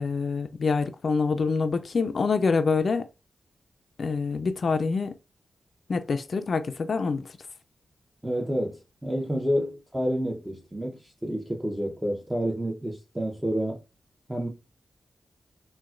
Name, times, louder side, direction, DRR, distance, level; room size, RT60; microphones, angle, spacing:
voice 1, 0.0-3.1 4.0-5.1 5.9-7.3, left 4 dB, 65° left, 0.3 m, -26 dB
voice 2, 8.2-13.8 14.3-14.5, equal, 10° right, 0.7 m, -29 dB
3.9 x 2.2 x 2.4 m
cardioid pair, 50°, 0 cm